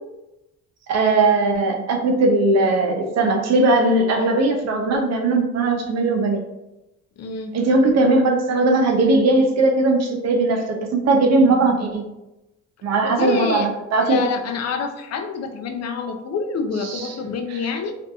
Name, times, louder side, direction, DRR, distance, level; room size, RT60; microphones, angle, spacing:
voice 1, 0.9-6.4 7.5-12.1 12.8-14.3 16.9-17.1, right 2 dB, 60° right, 2 dB, 0.6 m, -19 dB
voice 2, 7.2-7.6 13.0-13.7 14.0-17.9, left 5 dB, 55° left, 6 dB, 0.5 m, -27 dB
2.6 x 2.5 x 2.3 m, 0.94 s
cardioid pair, 90°, 30 cm